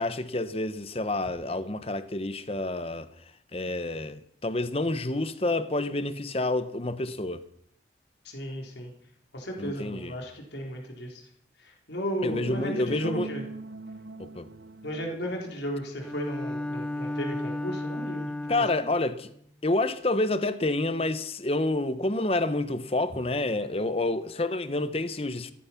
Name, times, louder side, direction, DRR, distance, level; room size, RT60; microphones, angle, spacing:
voice 1, 0.0-3.1 3.5-7.5 9.6-10.1 12.2-13.3 14.2-14.5 18.5-19.3 19.6-25.5, left 2 dB, 30° left, 0.9 m, -28 dB
voice 2, 8.2-8.9 9.3-11.2 11.6-13.4 14.8-18.3, equal, 70° left, 3.8 m, -35 dB
sound 1, 12.3-16.2, right 2 dB, 70° right, 0.9 m, -41 dB
Bowed string instrument, 16.0-19.1, left 1 dB, 5° left, 0.6 m, -33 dB
15.5 x 14.0 x 5.9 m
head